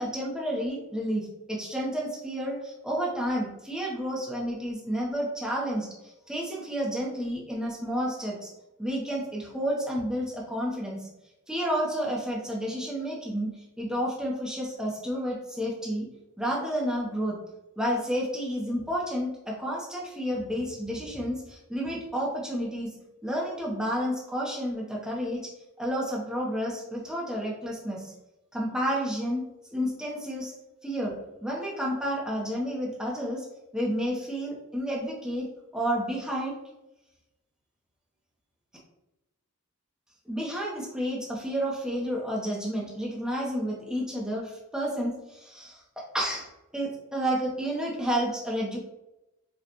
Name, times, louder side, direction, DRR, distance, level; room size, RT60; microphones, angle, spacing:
voice 1, 0.0-8.5 8.8-11.0 11.5-16.1 16.4-17.4 17.8-23.0 23.2-25.5 25.8-28.1 28.5-29.4 29.7-30.5 30.8-33.4 33.7-35.5 35.7-36.6 40.3-46.5 46.7-48.8, equal, 5° right, -4 dB, 0.8 m, -30 dB
5.1 x 2.3 x 2.9 m, 0.94 s
head